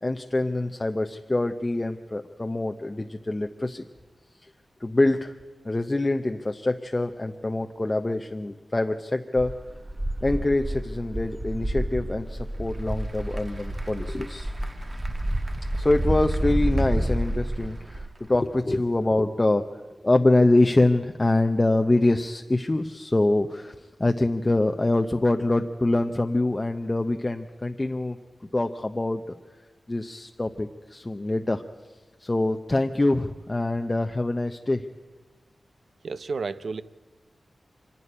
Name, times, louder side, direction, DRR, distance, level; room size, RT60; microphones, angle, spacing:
voice 1, 0.0-3.8 4.4-4.5 4.8-5.3 5.6-9.6 10.2-14.5 15.7-19.7 20.0-28.2 28.5-29.3 29.9-31.6 32.2-34.8, left 2 dB, 20° left, 5 dB, 0.6 m, -25 dB
sound 1, 9.4-18.1, right 1 dB, 15° right, 0.8 m, -29 dB
Applause / Crowd, 12.2-18.8, right 2 dB, 35° right, 1.2 m, -49 dB
voice 2, 36.0-36.8, right 4 dB, 70° right, 14 dB, 0.7 m, -31 dB
24.5 x 11.0 x 9.9 m, 1.3 s
wide cardioid pair, 125°, 0 cm